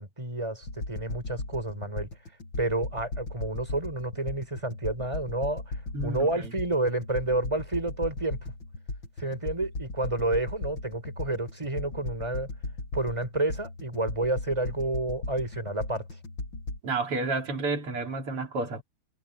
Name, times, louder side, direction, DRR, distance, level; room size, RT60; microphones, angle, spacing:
voice 1, 0.0-2.1 2.6-5.6 6.0-8.4 9.2-12.5 12.9-16.0, right 2 dB, 15° right, 5.5 m, -30 dB
sound 1, 0.6-16.8, left 2 dB, 60° left, 7.6 m, -37 dB
voice 2, 5.9-6.5 16.8-18.8, right 3 dB, 90° right, 3.9 m, -31 dB
omnidirectional pair, 2.4 m